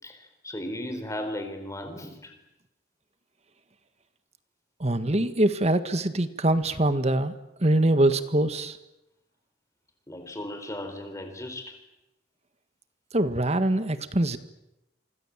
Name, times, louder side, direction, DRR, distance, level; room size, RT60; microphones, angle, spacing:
voice 1, 0.0-2.3 10.1-11.8, left 1 dB, 20° left, 7 dB, 4.2 m, -36 dB
voice 2, 4.8-7.3 7.6-8.8 13.1-14.4, right 1 dB, 35° right, 11 dB, 1.6 m, -23 dB
26.5 x 25.5 x 7.4 m, 0.89 s
head